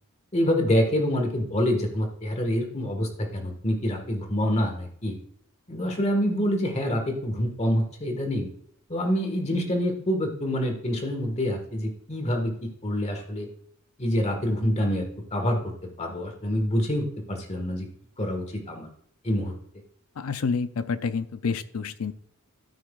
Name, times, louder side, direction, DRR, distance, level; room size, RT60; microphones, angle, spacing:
voice 1, 0.3-5.1 5.7-8.5 8.9-13.5 14.0-15.0 15.3-15.6 16.0-17.9 18.2-18.9 19.2-19.5, equal, 30° left, 4 dB, 1.6 m, -26 dB
voice 2, 20.2-22.1, left 5 dB, 85° left, 12 dB, 0.5 m, -28 dB
13.5 x 6.1 x 2.4 m, 0.65 s
head